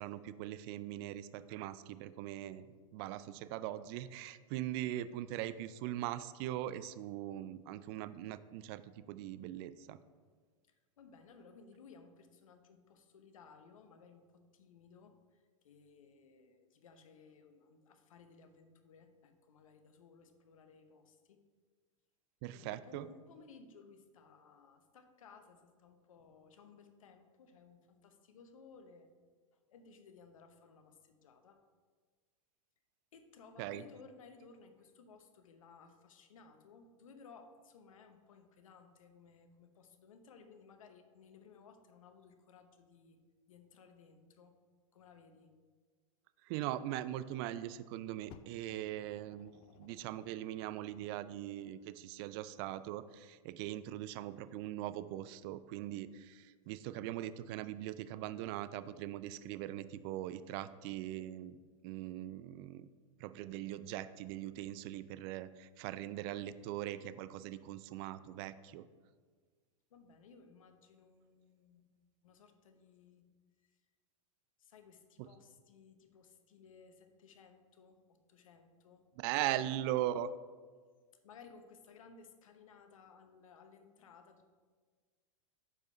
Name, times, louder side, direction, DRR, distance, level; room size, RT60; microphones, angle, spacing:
voice 1, 0.0-2.7 2.9-10.0 22.4-23.1 33.6-33.8 46.4-62.9 63.2-68.9 75.2-75.3 79.2-80.3, right 13 dB, 50° right, 14 dB, 0.4 m, -41 dB
voice 2, 10.7-21.4 22.5-29.1 29.5-31.6 33.1-43.2 43.5-44.6 44.9-45.5 69.9-73.3 73.6-73.7 74.6-79.1 79.4-80.0 81.2-84.5, left 5 dB, 80° left, 7 dB, 0.7 m, -59 dB
Fire, 48.3-51.1 51.9-52.0, left 8 dB, 35° left, 0.4 m, -60 dB
4.8 x 4.8 x 5.4 m, 1.5 s
hypercardioid pair, 105°, 17 cm